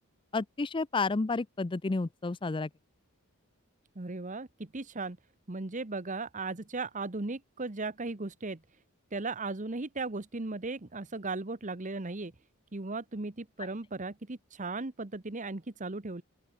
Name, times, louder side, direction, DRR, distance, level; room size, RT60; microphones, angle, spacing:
voice 1, 0.3-2.7, left 3 dB, 20° left, 0.4 m, -31 dB
voice 2, 3.9-5.2 5.5-8.6 9.1-12.3 12.7-16.2, right 3 dB, 35° right, 1.1 m, -37 dB
open air
head